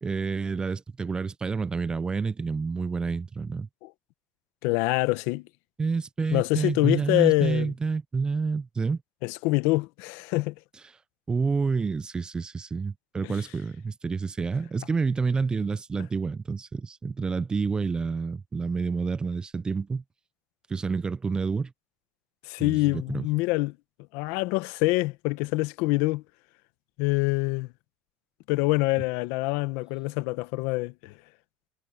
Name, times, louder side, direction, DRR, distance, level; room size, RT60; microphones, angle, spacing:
voice 1, 0.0-3.7 5.8-9.0 11.3-20.0 20.7-21.7 22.6-23.3, right 4 dB, 20° right, 0.5 m, -28 dB
voice 2, 4.6-5.5 6.3-7.7 9.2-10.5 22.4-23.8 24.1-26.2 27.0-27.7 28.5-31.1, left 21 dB, 70° left, 1.1 m, -25 dB
supercardioid pair, 120°, 5 cm